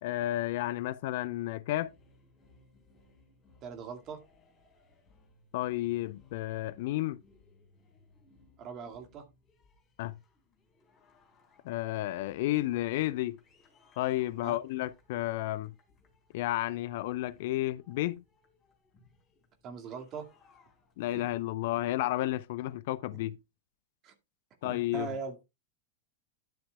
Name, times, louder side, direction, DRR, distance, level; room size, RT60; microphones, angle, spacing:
voice 1, 0.0-1.9 5.5-7.2 10.0-10.2 11.6-13.4 14.0-15.7 16.3-18.2 21.0-23.4 24.6-25.1, left 16 dB, 50° left, 0.5 m, -32 dB
sound 1, 1.7-21.3, left 2 dB, 20° left, 5.2 m, -65 dB
voice 2, 3.6-4.2 8.6-9.2 14.4-14.6 19.6-20.3 21.1-21.2 24.0-24.1 24.6-25.4, right 5 dB, 35° right, 2.2 m, -40 dB
11.5 x 9.8 x 2.3 m
figure-of-eight pair, 90°, 0 cm